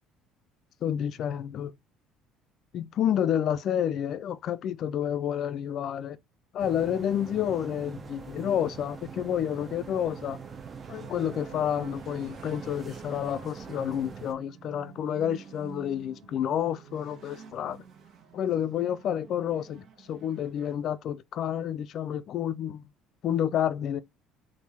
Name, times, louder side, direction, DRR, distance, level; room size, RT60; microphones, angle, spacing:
voice 1, 0.8-1.7 2.7-6.2 6.5-10.4 10.9-17.8 18.3-22.8 23.2-24.0, left 9 dB, 60° left, 0.4 m, -29 dB
sound 1, 6.6-14.3, right 5 dB, 35° right, 0.7 m, -43 dB
sound 2, 8.0-20.8, right 7 dB, 60° right, 1.3 m, -50 dB
3.6 x 2.6 x 4.1 m
supercardioid pair, 80°, 0 cm